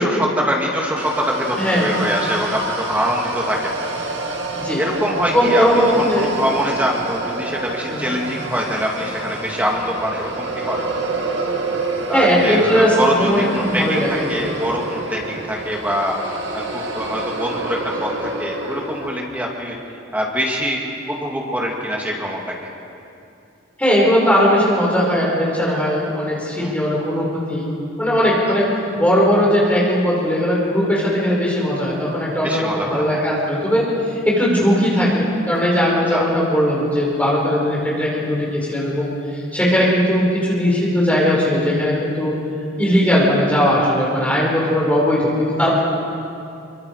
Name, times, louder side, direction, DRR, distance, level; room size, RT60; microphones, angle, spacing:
voice 1, 0.0-4.3 4.8-10.8 12.1-16.2 16.5-19.7 20.1-20.8 21.1-22.4 26.6-26.7 32.4-33.3 36.1-36.3, equal, 10° right, -2 dB, 2.4 m, -24 dB
sound 1, 1.0-19.2, right 3 dB, 65° right, 2.5 m, -28 dB
voice 2, 1.6-1.9 4.6-4.8 5.3-6.3 7.9-8.1 12.1-14.3 23.8-27.7 28.0-42.4 42.8-45.7, equal, 5° left, -5 dB, 5.4 m, -18 dB
25.0 x 24.5 x 4.9 m, 2.7 s
head